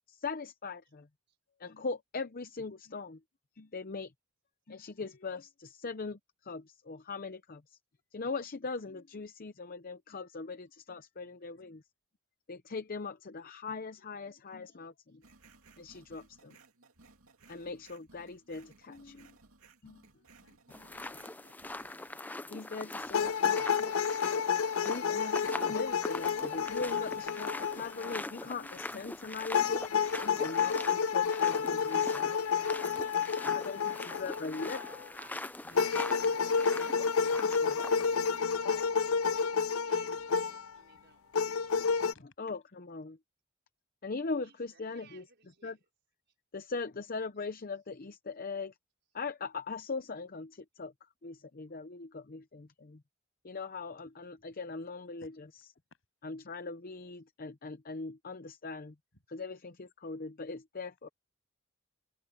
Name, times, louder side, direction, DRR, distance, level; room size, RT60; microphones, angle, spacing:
voice 1, 0.0-1.1 1.6-3.2 3.6-4.1 4.7-7.8 8.1-11.8 12.5-15.2 15.8-16.6 17.5-19.4 19.8-20.0 20.8-20.9 21.8-22.0 22.4-29.8 30.2-32.3 32.9-33.0 33.7-33.9 34.2-34.8 35.7-35.9 36.8-37.0 37.3-37.8 42.4-43.2 44.0-45.2 45.6-45.8 46.5-48.7 49.1-50.9 51.2-53.0 53.4-55.3 56.2-58.9 59.3-61.1, left 4 dB, 45° left, 0.7 m, -40 dB
sound 1, 15.2-22.1, right 3 dB, 90° right, 2.6 m, -60 dB
voice 2, 20.0-20.6 20.9-21.3 22.3-22.4 40.9-41.1 42.1-42.2 54.3-54.9 55.2-55.3 55.9-56.0 59.1-59.2, left 2 dB, 65° left, 8.0 m, -64 dB
sound 2, 20.7-38.4, left 2 dB, 10° left, 0.4 m, -43 dB
sound 3, 23.1-28.2 29.5-35.0 35.8-40.7 41.3-42.1, left 6 dB, 80° left, 0.5 m, -30 dB
voice 3, 33.1-35.9 36.2-41.4 44.4-45.8, right 5 dB, 55° right, 5.1 m, -62 dB
head